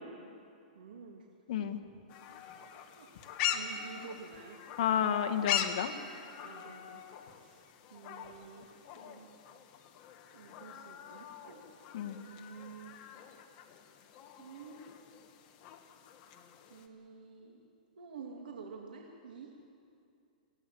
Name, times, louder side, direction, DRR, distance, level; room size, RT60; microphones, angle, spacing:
voice 1, 0.7-1.9 3.0-3.1 3.5-4.6 6.4-7.0 7.4-7.6 7.9-9.3 10.3-11.6 12.1-12.9 14.4-14.8 16.7-17.6 18.0-19.5, right 5 dB, 80° right, 1 dB, 2.6 m, -49 dB
voice 2, 1.5-1.8 4.8-5.9 11.9-12.2, left 9 dB, 50° left, 6 dB, 1.8 m, -31 dB
sound 1, 2.1-16.9, left 9 dB, 30° left, 1.6 m, -42 dB
27.0 x 16.5 x 7.9 m, 2.5 s
hypercardioid pair, 160°, 5 cm